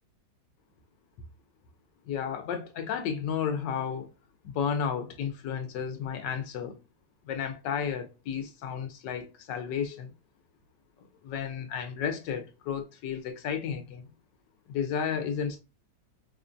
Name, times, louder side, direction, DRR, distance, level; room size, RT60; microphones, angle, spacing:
voice 1, 2.1-4.1 4.4-6.8 7.2-10.1 11.2-14.1 14.7-15.6, left 7 dB, 85° left, 1.3 m, -32 dB
5.5 x 2.2 x 2.5 m
omnidirectional pair, 1.9 m